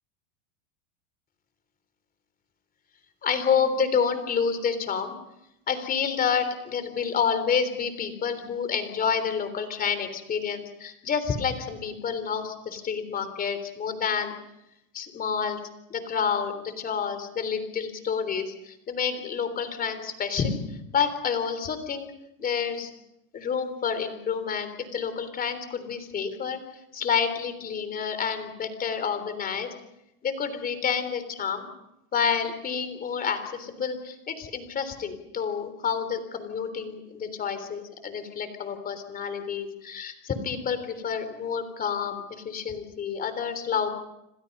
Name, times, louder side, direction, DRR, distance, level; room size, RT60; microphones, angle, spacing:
voice 1, 3.2-5.1 5.7-14.3 14.9-15.6 15.9-20.6 20.9-22.1 22.4-22.9 23.3-26.6 26.9-29.7 30.2-31.7 32.1-43.9, left 6 dB, 20° left, 10 dB, 3.5 m, -29 dB
28.5 x 26.0 x 5.5 m, 0.86 s
supercardioid pair, 160°, 42 cm